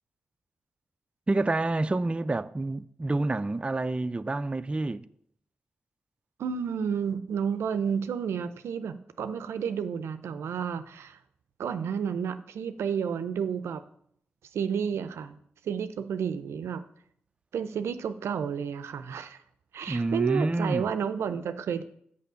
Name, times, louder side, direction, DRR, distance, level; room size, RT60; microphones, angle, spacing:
voice 1, 1.3-5.0 19.9-20.9, right 2 dB, 25° right, 0.4 m, -28 dB
voice 2, 6.4-11.2 11.6-13.8 14.5-15.4 15.6-16.8 17.5-19.4 19.7-21.8, right 7 dB, 85° right, 0.5 m, -31 dB
6.7 x 5.1 x 6.8 m
supercardioid pair, 45°, 4 cm